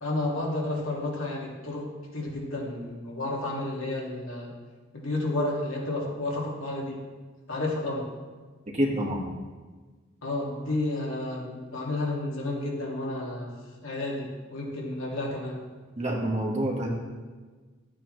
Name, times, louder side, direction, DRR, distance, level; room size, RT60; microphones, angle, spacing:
voice 1, 0.0-4.5 4.9-7.0 7.5-8.1 10.2-13.5 13.8-15.6, left 2 dB, 80° left, -3 dB, 2.3 m, -31 dB
voice 2, 8.7-9.2 16.0-16.9, right 1 dB, 35° right, -2 dB, 1.8 m, -27 dB
12.5 x 8.8 x 3.3 m, 1.4 s
head